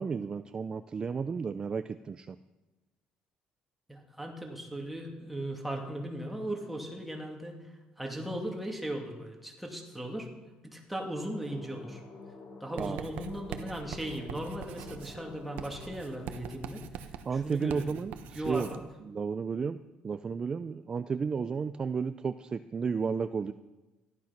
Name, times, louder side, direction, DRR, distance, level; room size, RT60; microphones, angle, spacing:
voice 1, 0.0-2.4 12.7-13.1 17.3-23.5, right 5 dB, 30° right, 12 dB, 0.4 m, -33 dB
voice 2, 3.9-10.3 10.6-12.0 12.6-17.0 17.3-17.9 18.3-18.8, right 1 dB, 5° right, 1 dB, 2.5 m, -38 dB
sound 1, 10.9-16.5, left 3 dB, 50° left, 4.1 m, -49 dB
Writing, 12.8-18.8, right 9 dB, 75° right, 1.1 m, -44 dB
14.5 x 12.0 x 5.9 m, 1.1 s
cardioid pair, 125°, 3 cm